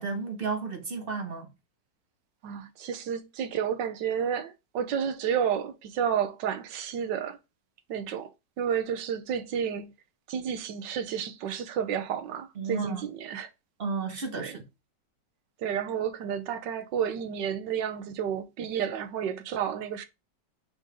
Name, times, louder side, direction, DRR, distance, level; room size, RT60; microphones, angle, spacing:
voice 1, 0.0-1.5 12.5-13.0 13.8-14.6, right 4 dB, 40° right, 1.0 m, -32 dB
voice 2, 2.4-7.4 7.9-8.3 8.6-9.9 10.3-13.5 14.3-14.6 15.6-20.0, right 8 dB, 85° right, 1.5 m, -31 dB
5.6 x 3.9 x 4.9 m
omnidirectional pair, 1.9 m